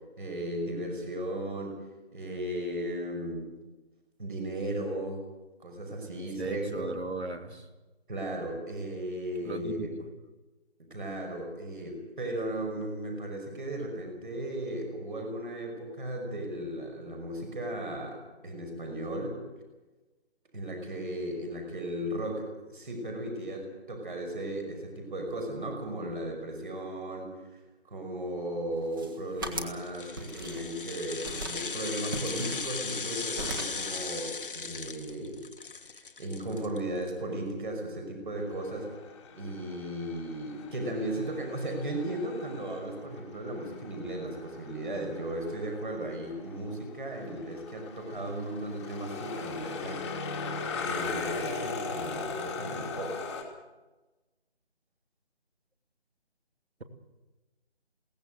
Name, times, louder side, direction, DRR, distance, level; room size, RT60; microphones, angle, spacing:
voice 1, 0.2-1.8 2.1-3.5 4.2-5.2 5.6-6.9 8.1-9.9 10.9-19.4 20.5-27.6 27.8-35.4 35.7-38.9 39.3-50.1 50.9-53.2, right 1 dB, 50° right, 3 dB, 5.9 m, -36 dB
voice 2, 6.0-7.7 9.4-10.1, right 3 dB, 75° right, 6 dB, 3.1 m, -38 dB
sound 1, 28.8-29.8 30.2-30.9 31.2-31.6 32.1-33.1 33.4-33.9, right 2 dB, 20° right, 1.7 m, -39 dB
sound 2, 29.8-37.1 37.4-37.5, left 4 dB, 55° left, 1.2 m, -37 dB
sound 3, 38.4-53.4, left 4 dB, 10° left, 1.8 m, -39 dB
22.0 x 17.5 x 7.9 m, 1.1 s
figure-of-eight pair, 165°, 33 cm